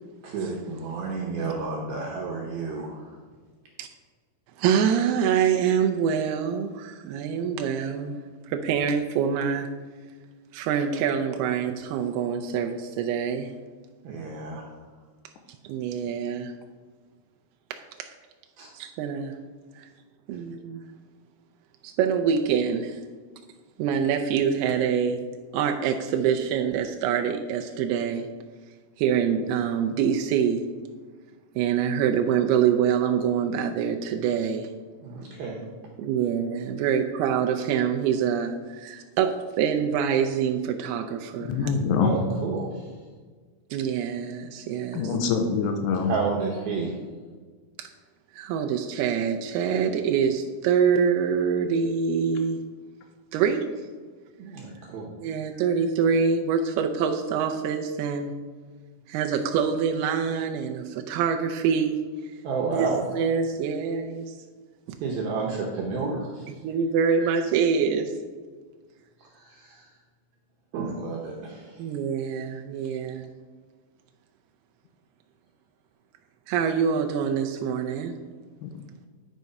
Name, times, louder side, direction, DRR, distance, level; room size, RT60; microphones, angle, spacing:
voice 1, 0.2-3.2 14.0-14.7 18.6-18.7 35.0-35.6 36.8-36.9 42.0-42.9 46.0-46.9 54.4-55.1 55.5-55.7 62.4-63.0 65.0-66.5 67.2-67.3 69.2-69.9 70.7-71.8, right 4 dB, 75° right, -2 dB, 2.4 m, -31 dB
voice 2, 4.6-8.2 8.5-9.7 10.5-13.5 15.6-16.5 18.0-18.1 18.7-19.3 19.8-19.9 20.3-20.8 21.8-23.0 23.8-25.2 25.5-28.3 29.0-30.6 31.6-34.7 36.0-41.6 43.7-45.1 47.8-47.9 48.3-52.6 53.3-53.7 55.2-58.3 59.1-62.0 62.7-62.9 63.1-64.3 64.9-65.0 66.6-68.1 71.8-73.3 76.5-78.1, right 7 dB, 90° right, 4 dB, 2.2 m, -25 dB
voice 3, 41.5-42.1 44.9-46.1 78.6-78.8, left 6 dB, 85° left, 5 dB, 2.7 m, -25 dB
10.0 x 4.7 x 5.3 m, 1.5 s
omnidirectional pair, 5.1 m